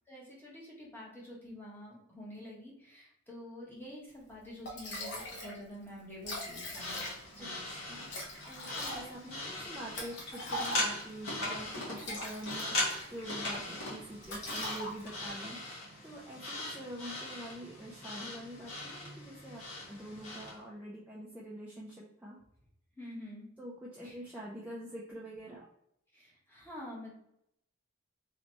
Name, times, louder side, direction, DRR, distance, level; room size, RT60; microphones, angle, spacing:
voice 1, 0.1-7.0 7.3-7.6 23.0-23.5 24.0-24.2 26.1-27.1, left 1 dB, 10° left, -5 dB, 1.1 m, -47 dB
Liquid, 4.3-4.4 4.7-5.6 5.9-6.0 6.1-7.4 8.1-11.1 11.8-13.3 13.6-13.9 14.2-15.3, left 1 dB, 55° left, 1.0 m, -41 dB
sound 1, 6.7-20.6, left 2 dB, 85° left, 1.4 m, -39 dB
voice 2, 7.7-22.4 23.6-25.7, right 1 dB, 10° right, -6 dB, 0.5 m, -46 dB
3.2 x 3.0 x 2.9 m, 0.75 s
head